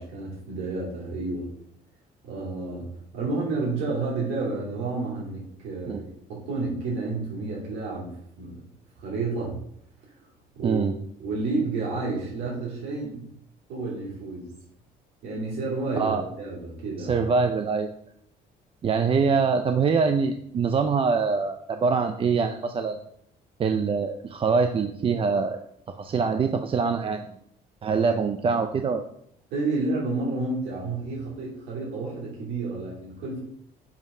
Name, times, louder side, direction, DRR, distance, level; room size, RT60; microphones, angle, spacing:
voice 1, 0.0-1.5 2.2-8.6 9.0-9.5 10.5-10.8 11.2-13.3 13.7-14.5 15.2-17.3 29.5-33.4, right 3 dB, 85° right, -5 dB, 2.8 m, -30 dB
voice 2, 10.6-10.9 16.0-16.2 17.0-17.9 18.8-23.0 23.6-25.6 25.9-27.3 27.8-29.0, right 5 dB, 35° right, 7 dB, 0.5 m, -24 dB
7.2 x 3.6 x 5.4 m, 0.69 s
cardioid pair, 110°, 17 cm